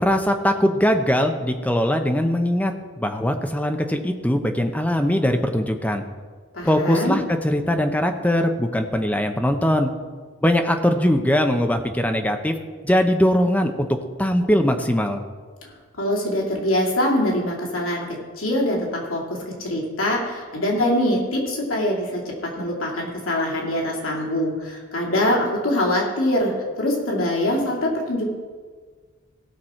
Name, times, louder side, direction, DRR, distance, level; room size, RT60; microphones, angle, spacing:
voice 1, 0.0-6.0 6.6-9.9 10.4-12.5 12.8-13.9 14.2-15.2, equal, 5° left, 5 dB, 0.7 m, -21 dB
voice 2, 6.5-7.1 15.6-15.7 16.0-28.3, left 1 dB, 80° left, -2 dB, 2.6 m, -24 dB
17.5 x 6.1 x 4.4 m, 1.5 s
head